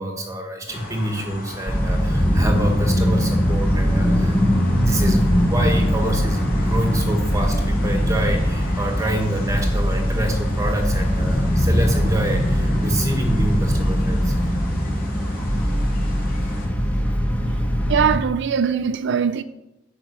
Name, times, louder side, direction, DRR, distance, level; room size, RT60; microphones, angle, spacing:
voice 1, 0.0-14.5, right 1 dB, 15° right, 1.3 m, -27 dB
sound 1, 0.7-16.7, left 1 dB, 45° left, 3.2 m, -37 dB
sound 2, 1.7-18.2, equal, 10° left, 1.2 m, -21 dB
voice 2, 17.9-19.4, right 7 dB, 60° right, 0.4 m, -21 dB
10.5 x 5.8 x 8.3 m
head